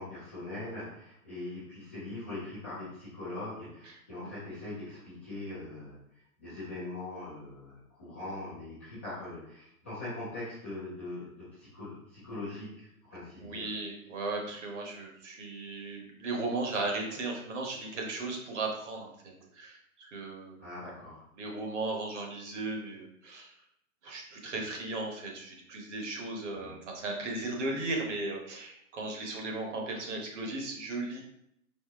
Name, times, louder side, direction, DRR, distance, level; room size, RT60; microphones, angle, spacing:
voice 1, 0.0-6.0 6.4-13.7 20.6-21.2 26.5-26.7, left 2 dB, 10° left, -15 dB, 0.4 m, -41 dB
voice 2, 3.8-4.3 13.4-20.6 20.8-20.9 21.4-23.5 24.0-31.2, right 2 dB, 50° right, 1 dB, 1.2 m, -36 dB
4.3 x 2.7 x 3.5 m, 0.76 s
hypercardioid pair, 145°, 45 cm